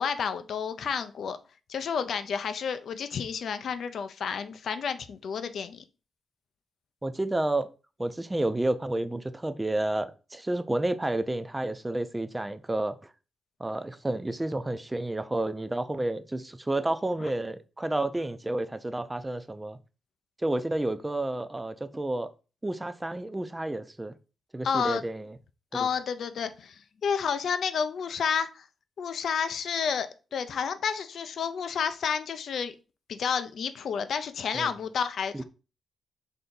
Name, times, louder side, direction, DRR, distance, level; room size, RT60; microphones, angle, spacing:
voice 1, 0.0-1.4 1.7-5.8 17.2-17.3 24.6-25.0 25.7-28.7 29.0-32.7 33.1-35.4, left 6 dB, 70° left, 0.4 m, -30 dB
voice 2, 7.0-7.7 8.0-13.0 13.6-19.8 20.4-22.3 22.6-24.1 24.5-25.3 25.7-25.9 34.5-34.7 35.3-35.4, right 1 dB, 15° right, 0.4 m, -30 dB
3.4 x 2.7 x 3.8 m
cardioid pair, 80°, 0 cm